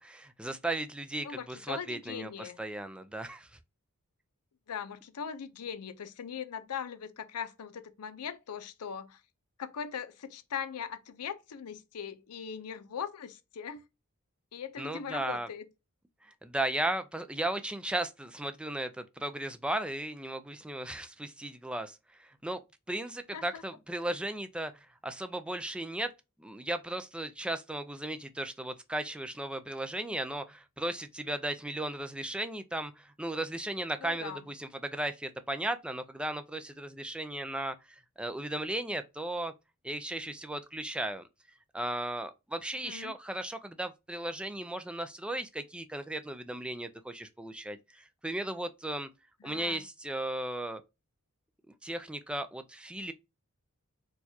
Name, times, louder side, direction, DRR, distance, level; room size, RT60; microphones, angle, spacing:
voice 1, 0.0-3.5 14.8-15.5 16.4-22.6 22.9-24.7 25.0-26.1 26.4-37.7 38.2-39.5 39.8-41.2 41.7-49.1 49.4-50.8 51.8-53.1, right 1 dB, 5° right, 0.3 m, -36 dB
voice 2, 1.2-2.6 4.7-9.2 9.6-13.8 14.5-15.6 23.3-23.6 34.0-34.4 42.8-43.1 49.4-49.8, left 7 dB, 90° left, 0.5 m, -40 dB
4.4 x 2.3 x 2.7 m
head